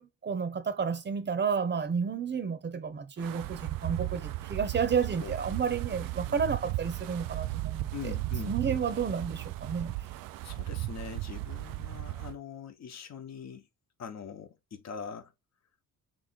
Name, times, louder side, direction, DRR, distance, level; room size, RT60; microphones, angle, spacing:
voice 1, 0.0-8.1 8.5-9.9, right 6 dB, 30° right, 0.8 m, -31 dB
Wind, 3.2-12.4, right 17 dB, 70° right, 0.5 m, -36 dB
voice 2, 7.9-8.8 10.4-13.7 14.0-15.3, left 7 dB, 50° left, 1.0 m, -42 dB
3.2 x 3.1 x 4.1 m
cardioid pair, 95°, 34 cm